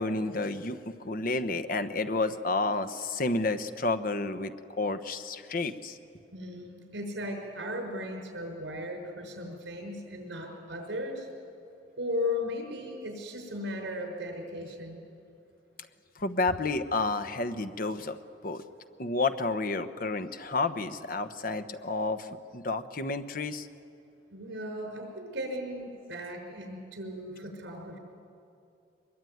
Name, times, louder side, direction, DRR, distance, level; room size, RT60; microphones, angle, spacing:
voice 1, 0.0-6.0 16.2-18.2 18.4-18.6 19.0-23.7, left 3 dB, 50° left, 9 dB, 1.0 m, -30 dB
voice 2, 6.3-11.3 12.0-15.0 24.3-28.0, left 1 dB, 80° right, 3 dB, 5.8 m, -36 dB
22.5 x 22.0 x 9.4 m, 2.6 s
head